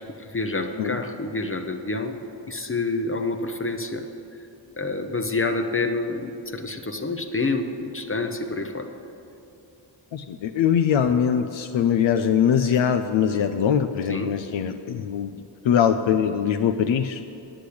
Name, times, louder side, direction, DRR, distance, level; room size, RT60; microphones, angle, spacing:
voice 1, 0.2-2.2 2.5-4.0 4.8-8.9 14.1-14.3, left 3 dB, 30° left, 5 dB, 0.7 m, -28 dB
voice 2, 10.1-15.3 15.6-17.2, left 8 dB, 75° left, 7 dB, 0.6 m, -22 dB
10.0 x 8.1 x 8.5 m, 2.7 s
wide cardioid pair, 95°, 45 cm